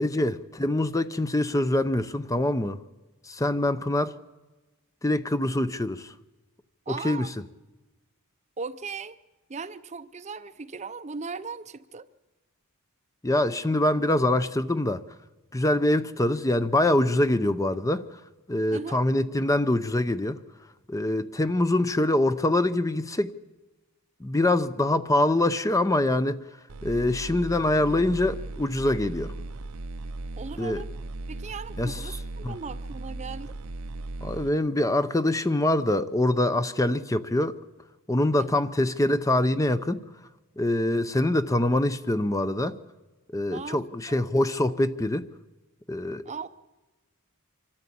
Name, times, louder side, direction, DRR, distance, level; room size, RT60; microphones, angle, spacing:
voice 1, 0.0-2.8 3.2-4.1 5.0-6.1 6.9-7.3 13.2-15.0 15.5-18.2 18.5-20.4 20.9-23.3 24.2-26.4 26.8-29.3 30.6-30.8 31.8-32.0 32.4-32.6 34.2-37.5 38.1-40.0 40.6-42.8 43.3-45.3 45.9-46.2, left 1 dB, 15° left, 12 dB, 0.6 m, -24 dB
voice 2, 6.9-7.3 8.6-9.2 9.5-12.1 18.7-19.0 30.4-30.9 31.3-33.5 38.4-38.6 43.5-43.8 44.1-44.2 46.2-46.5, right 4 dB, 30° right, 13 dB, 0.6 m, -38 dB
sound 1, 26.7-34.5, right 2 dB, 85° right, 0.8 m, -37 dB
25.5 x 13.0 x 8.6 m, 1.2 s
head